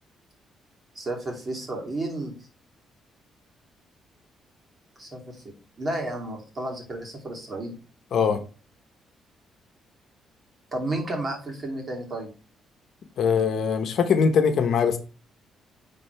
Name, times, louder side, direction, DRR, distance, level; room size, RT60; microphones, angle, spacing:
voice 1, 0.9-2.4 5.0-5.4 5.8-7.8 10.7-12.3, right 1 dB, 35° right, 2.8 m, -32 dB
voice 2, 8.1-8.4 13.2-15.0, left 6 dB, 65° left, 1.0 m, -21 dB
9.7 x 3.9 x 3.4 m
cardioid pair, 90°, 0 cm